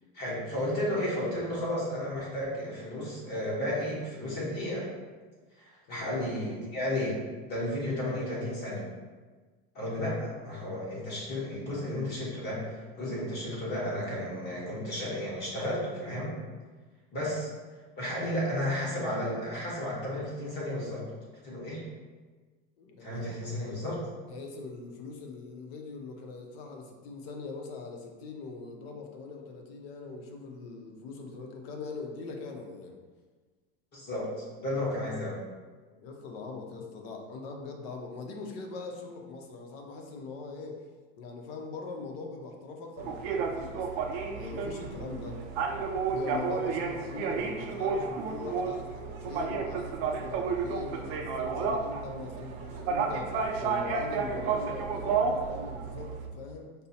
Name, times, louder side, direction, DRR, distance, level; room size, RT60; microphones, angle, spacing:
voice 1, 0.1-4.8 5.6-7.2 7.5-8.9 9.7-12.6 13.0-16.3 17.1-17.5 18.0-21.0 21.4-21.8 23.0-24.0 33.9-35.4, left 1 dB, 35° left, -6 dB, 1.3 m, -33 dB
voice 2, 22.8-23.8 24.3-33.0 36.0-40.9 41.2-44.0 44.3-45.4 46.1-56.7, left 3 dB, 80° left, 3 dB, 0.7 m, -41 dB
sound 1, 43.0-56.3, right 5 dB, 50° right, 0.5 m, -32 dB
5.1 x 2.0 x 2.8 m, 1.4 s
supercardioid pair, 145°, 30 cm